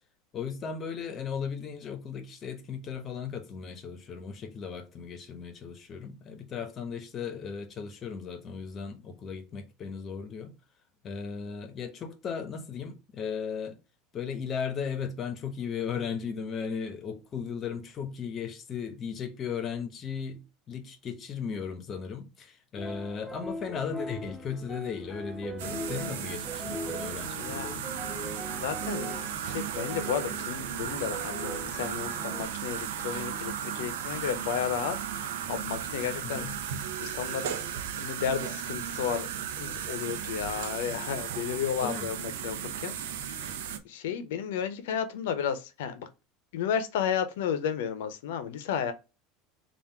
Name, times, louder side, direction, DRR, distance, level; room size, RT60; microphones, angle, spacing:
voice 1, 0.3-10.5 11.0-13.8 14.1-20.4 20.7-27.9 36.2-36.6 41.8-42.1, left 6 dB, 40° left, 1.0 m, -36 dB
sound 1, 22.7-32.4, equal, 5° left, 1.3 m, -40 dB
sound 2, 25.6-43.8, right 9 dB, 85° right, 0.6 m, -35 dB
voice 2, 27.4-27.7 28.5-36.5 37.0-37.6 38.0-39.3 39.6-43.5 43.8-46.1 46.5-48.9, left 8 dB, 80° left, 0.7 m, -33 dB
3.6 x 2.5 x 4.5 m
supercardioid pair, 110°, 0 cm